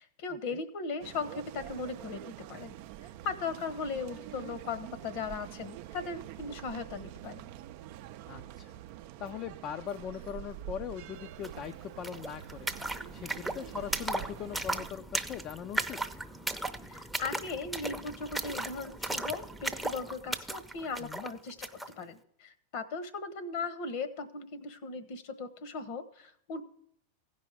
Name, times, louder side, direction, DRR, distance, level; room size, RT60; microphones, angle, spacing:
voice 1, 0.0-2.8 3.2-7.5 16.9-21.6 22.0-26.6, left 4 dB, 55° left, 13 dB, 1.1 m, -38 dB
sound 1, 1.0-14.9, right 13 dB, 55° right, 0.5 m, -46 dB
voice 2, 8.3-8.7 9.2-12.7 13.1-16.0 21.0-21.3, left 9 dB, 40° left, 6 dB, 0.5 m, -40 dB
sound 2, 11.4-11.5 11.7-21.9, right 1 dB, ahead, 0.7 m, -37 dB
15.5 x 5.4 x 4.9 m, 0.69 s
hypercardioid pair, 100°, 0 cm